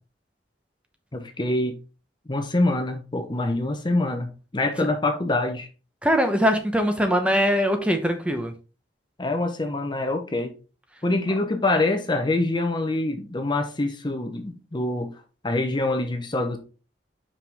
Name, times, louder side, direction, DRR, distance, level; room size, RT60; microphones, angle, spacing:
voice 1, 1.1-1.8 2.3-5.7 9.2-10.5 11.0-15.1 15.4-16.6, left 2 dB, 25° left, 0.8 m, -25 dB
voice 2, 6.0-8.5, equal, 5° right, 0.9 m, -22 dB
5.5 x 5.5 x 3.5 m
head